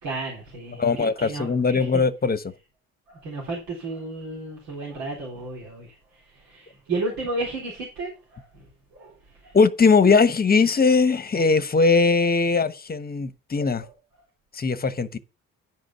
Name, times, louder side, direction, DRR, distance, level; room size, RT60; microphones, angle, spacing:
voice 1, 0.0-2.0 3.1-9.6 11.3-11.5 13.8-13.9, right 2 dB, 75° right, 3.7 m, -33 dB
voice 2, 0.8-2.4 9.5-13.8 14.5-15.2, left 4 dB, 25° left, 1.1 m, -20 dB
11.0 x 5.2 x 5.7 m
hypercardioid pair, 55°, 35 cm